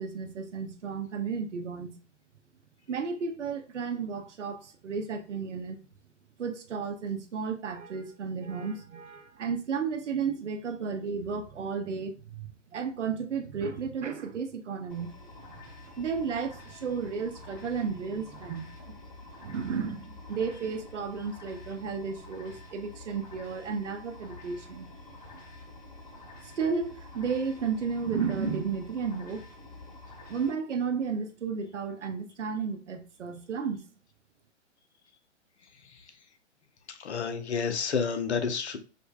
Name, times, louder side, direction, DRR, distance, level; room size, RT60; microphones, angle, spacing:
voice 1, 0.0-2.0 2.9-5.8 6.4-15.1 16.0-19.0 19.4-24.9 26.4-29.4 30.3-33.8, right 5 dB, 75° right, 0.6 m, -33 dB
sound 1, 14.9-30.5, left 2 dB, 35° left, 1.3 m, -48 dB
voice 2, 36.9-38.8, left 6 dB, 65° left, 0.7 m, -30 dB
5.0 x 2.1 x 2.3 m
figure-of-eight pair, 125°, 36 cm